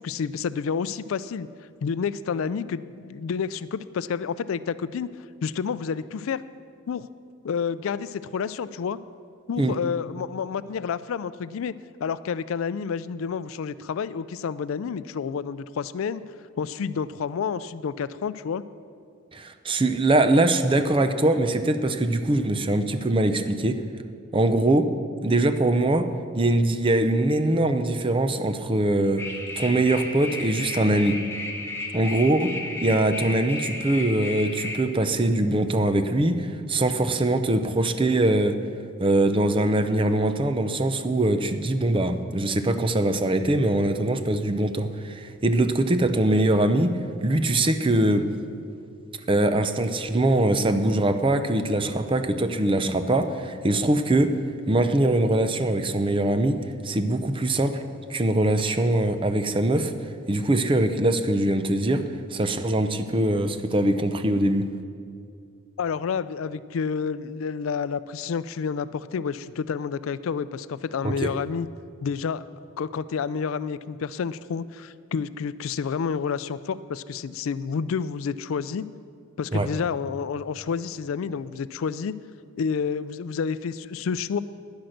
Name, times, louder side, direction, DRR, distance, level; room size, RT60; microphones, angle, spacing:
voice 1, 0.0-1.5 1.8-5.1 5.4-6.4 6.9-7.1 7.4-9.0 9.5-11.7 12.0-16.2 16.6-18.6 65.8-71.7 72.0-72.4 72.8-78.8 79.4-82.2 82.6-84.4, left 6 dB, 70° left, 15 dB, 0.4 m, -29 dB
voice 2, 19.3-23.8 24.3-24.9 25.2-26.1 26.4-29.2 29.6-31.2 31.9-32.5 32.8-38.6 39.0-46.9 47.2-48.2 49.3-54.3 54.7-56.6 56.8-57.8 58.1-59.9 60.3-62.0 62.3-64.6 71.0-71.3 79.5-79.7, right 1 dB, 25° right, 9 dB, 0.6 m, -22 dB
sound 1, 29.2-34.8, left 2 dB, 10° left, 1.3 m, -34 dB
10.5 x 10.5 x 6.5 m, 2.4 s
head